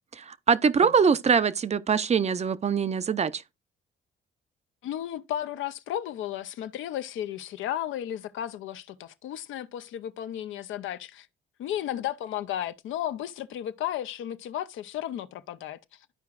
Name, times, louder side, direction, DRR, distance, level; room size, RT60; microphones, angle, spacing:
voice 1, 0.2-3.4, right 6 dB, 35° right, 0.5 m, -23 dB
voice 2, 4.8-11.3 11.6-15.8, left 11 dB, 80° left, 0.6 m, -34 dB
13.0 x 4.7 x 2.4 m
cardioid pair, 90°, 20 cm